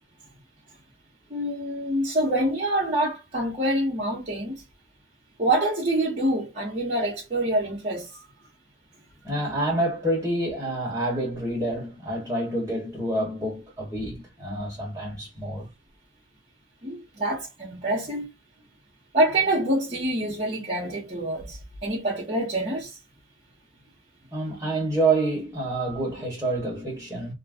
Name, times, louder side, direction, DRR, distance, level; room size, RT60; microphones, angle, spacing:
voice 1, 1.3-4.6 5.4-8.2 16.8-18.3 19.1-23.0, right 1 dB, 40° right, 0.8 m, -26 dB
voice 2, 9.2-15.7 24.3-27.3, right 2 dB, 15° right, 1.0 m, -27 dB
2.5 x 2.2 x 3.3 m
head